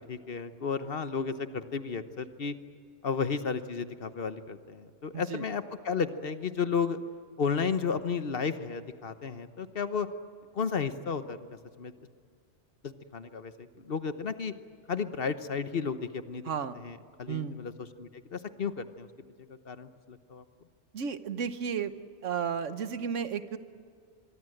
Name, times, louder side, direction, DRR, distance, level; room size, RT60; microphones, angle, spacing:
voice 1, 0.1-2.5 3.0-7.0 7.4-10.1 10.5-11.4 11.8-11.9 12.8-14.5 14.9-16.4 16.7-17.7 18.0-19.1 19.6-20.4, left 5 dB, 55° left, 11 dB, 1.2 m, -33 dB
voice 2, 5.1-5.5 16.4-16.8 17.3-17.6 20.9-21.9 22.2-23.6, right 7 dB, 90° right, 11 dB, 1.4 m, -33 dB
24.5 x 23.5 x 7.9 m, 2.2 s
omnidirectional pair, 1.2 m